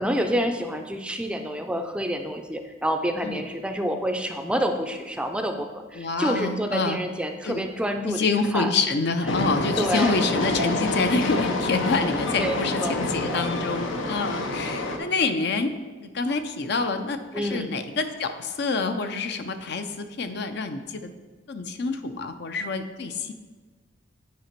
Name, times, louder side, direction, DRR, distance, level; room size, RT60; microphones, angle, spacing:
voice 1, 0.0-8.3 8.5-8.7 9.3-9.4 9.8-10.3 12.4-13.5 14.4-14.8 17.3-17.7, equal, 5° right, 5 dB, 0.4 m, -28 dB
voice 2, 5.9-7.0 7.4-7.7 8.0-15.7 16.0-21.1 21.5-23.3, left 3 dB, 60° left, 8 dB, 0.5 m, -27 dB
Train, 9.3-15.0, left 2 dB, 85° left, 0.9 m, -27 dB
9.3 x 5.0 x 4.5 m, 1.4 s
head